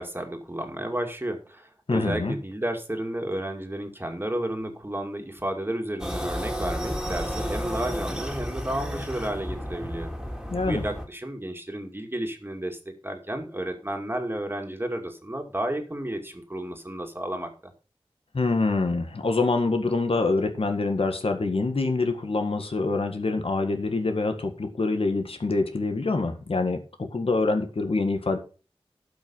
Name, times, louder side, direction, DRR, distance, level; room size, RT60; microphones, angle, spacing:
voice 1, 0.0-10.1 10.7-17.5, right 1 dB, 20° right, 4 dB, 2.4 m, -32 dB
voice 2, 1.9-2.3 10.5-10.8 18.3-28.4, left 3 dB, 70° left, 6 dB, 1.7 m, -25 dB
sound 1, 6.0-11.1, equal, 5° right, 2.9 m, -32 dB
12.0 x 5.7 x 5.6 m, 0.36 s
wide cardioid pair, 45°, 10 cm